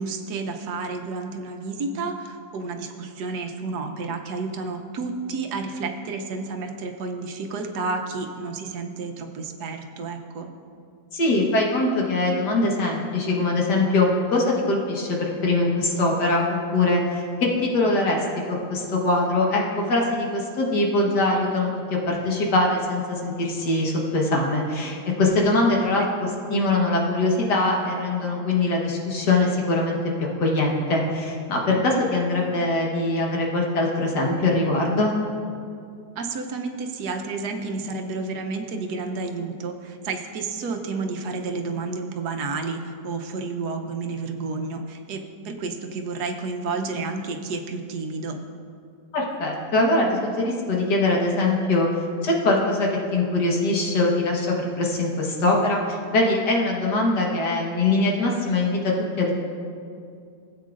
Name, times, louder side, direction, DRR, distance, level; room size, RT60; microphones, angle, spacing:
voice 1, 0.0-10.5 26.0-26.6 31.7-32.0 36.2-48.4 57.2-57.5, right 4 dB, 75° right, 4 dB, 1.4 m, -31 dB
voice 2, 11.1-18.2 18.5-35.2 49.1-51.9 52.2-59.3, left 2 dB, 80° left, -1 dB, 2.0 m, -22 dB
17.5 x 8.4 x 2.5 m, 2.3 s
omnidirectional pair, 1.8 m